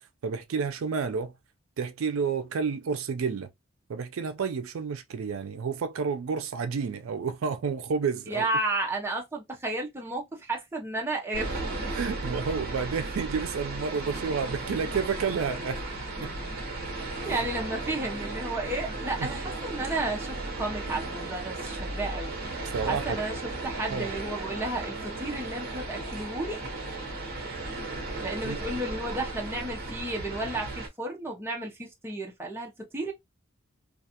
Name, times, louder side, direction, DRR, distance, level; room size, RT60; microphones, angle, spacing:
voice 1, 0.2-1.3 1.8-3.5 3.9-8.5 11.9-15.8 16.2-16.3 17.2-17.3 19.2-19.3 22.7-23.2 23.9-24.1 28.4-28.6, right 5 dB, 80° right, 0.4 m, -30 dB
voice 2, 8.3-11.5 17.3-26.6 28.2-33.1, right 2 dB, 10° right, 0.6 m, -33 dB
sound 1, 11.3-30.9, right 2 dB, 45° right, 0.8 m, -35 dB
2.5 x 2.3 x 2.7 m
head